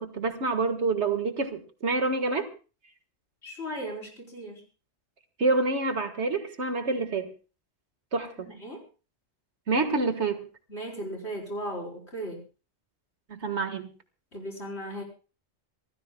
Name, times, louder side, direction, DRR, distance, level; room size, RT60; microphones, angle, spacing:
voice 1, 0.0-2.5 5.4-7.3 8.1-8.5 9.7-10.5 13.3-13.9, right 3 dB, 75° right, 7 dB, 1.9 m, -27 dB
voice 2, 3.4-4.6 8.4-8.8 10.7-12.4 14.3-15.0, equal, 70° left, -2 dB, 4.5 m, -36 dB
26.5 x 15.0 x 2.2 m, 0.35 s
omnidirectional pair, 1.2 m